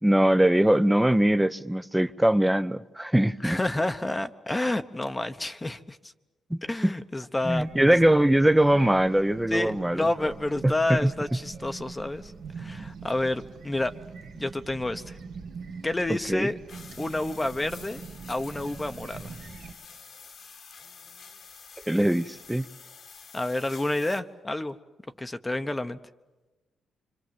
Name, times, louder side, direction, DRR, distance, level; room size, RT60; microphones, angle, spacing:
voice 1, 0.0-3.6 6.5-6.9 7.4-10.1 10.6-11.1 16.1-16.5 21.9-22.7, right 1 dB, 5° right, 0.8 m, -22 dB
voice 2, 3.4-6.0 6.6-8.0 9.5-13.9 14.3-15.2 15.8-16.6 17.0-18.0 18.3-19.3 23.3-24.8 25.2-26.0, left 2 dB, 15° left, 1.0 m, -29 dB
sound 1, 7.4-19.7, right 5 dB, 85° right, 2.3 m, -43 dB
sound 2, 16.7-24.2, left 5 dB, 65° left, 1.8 m, -48 dB
26.0 x 25.5 x 7.7 m
cardioid pair, 70°, 0 cm